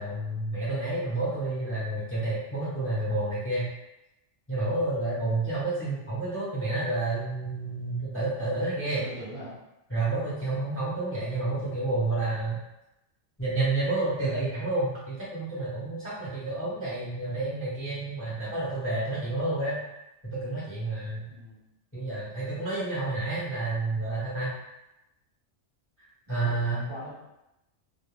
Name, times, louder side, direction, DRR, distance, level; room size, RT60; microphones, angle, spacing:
voice 1, 0.0-3.7 4.5-9.0 9.9-12.6 13.4-19.8 20.2-21.3 21.9-24.5 26.0-26.8, right 2 dB, 15° left, -9 dB, 0.6 m, -30 dB
voice 2, 8.7-9.6 21.3-21.6 26.3-27.1, equal, 25° right, -10 dB, 0.8 m, -41 dB
2.3 x 2.2 x 3.1 m, 0.93 s
omnidirectional pair, 1.3 m